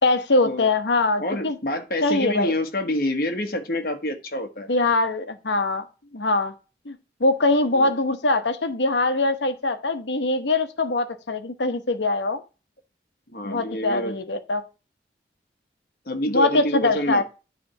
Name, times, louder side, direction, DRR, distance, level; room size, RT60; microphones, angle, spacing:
voice 1, 0.0-1.6 2.0-2.5 4.7-5.9 6.1-6.5 6.8-12.4 13.4-14.6 16.3-17.2, left 2 dB, 85° left, 9 dB, 1.1 m, -22 dB
voice 2, 1.2-4.7 7.7-7.9 13.3-14.1 16.1-17.2, left 1 dB, 55° left, 5 dB, 1.3 m, -27 dB
9.7 x 3.5 x 5.5 m, 0.32 s
head